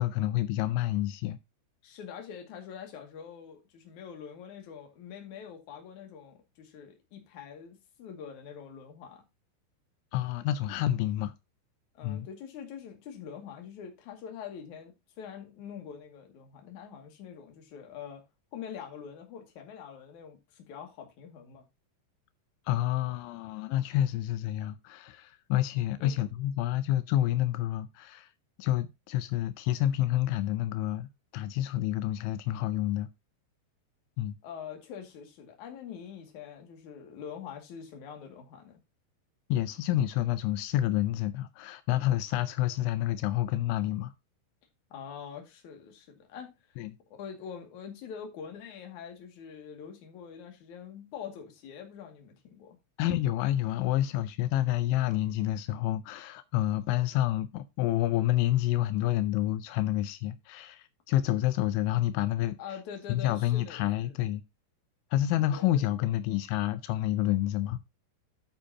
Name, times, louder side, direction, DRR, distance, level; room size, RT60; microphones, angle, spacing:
voice 1, 0.0-1.4 10.1-11.3 12.0-12.3 22.7-28.3 28.6-33.1 34.2-34.4 39.5-44.1 46.8-47.0 53.0-62.6 63.1-64.4 65.1-67.8, left 13 dB, 85° left, 3.0 m, -28 dB
voice 2, 1.8-9.2 11.9-18.2 18.5-21.6 26.0-26.1 34.4-38.8 44.9-46.5 47.1-52.8 62.6-64.2 65.5-65.8, left 7 dB, 50° left, 3.0 m, -44 dB
10.5 x 8.3 x 2.9 m
omnidirectional pair, 5.3 m